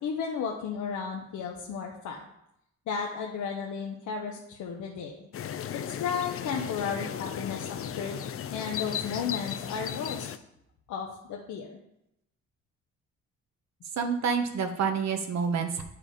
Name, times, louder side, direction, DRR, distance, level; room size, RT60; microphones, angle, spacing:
voice 1, 0.0-2.3 2.9-5.3 5.7-8.2 8.5-10.3 10.9-11.8, left 6 dB, 75° left, -1 dB, 1.0 m, -34 dB
sound 1, 5.3-10.4, left 9 dB, 50° left, 0.5 m, -36 dB
voice 2, 14.0-15.8, right 6 dB, 60° right, 5 dB, 1.2 m, -28 dB
8.6 x 4.8 x 5.0 m, 0.82 s
cardioid pair, 90°, 30 cm